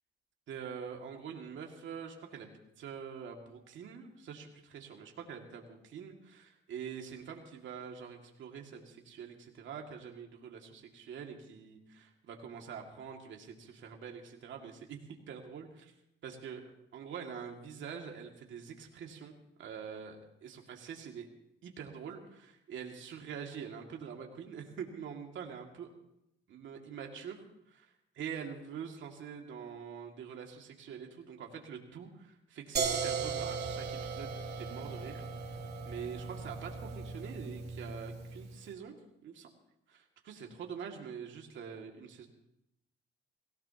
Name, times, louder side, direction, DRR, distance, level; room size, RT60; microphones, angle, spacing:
voice 1, 0.5-15.9 16.2-21.3 21.6-25.9 26.5-35.3 35.8-38.9 39.2-39.5 39.9-42.3, right 7 dB, 75° right, 1 dB, 2.3 m, -45 dB
sound 1, 32.8-38.6, right 5 dB, 55° right, 3.1 m, -37 dB
24.5 x 17.0 x 2.9 m, 0.82 s
cardioid pair, 90°, 20 cm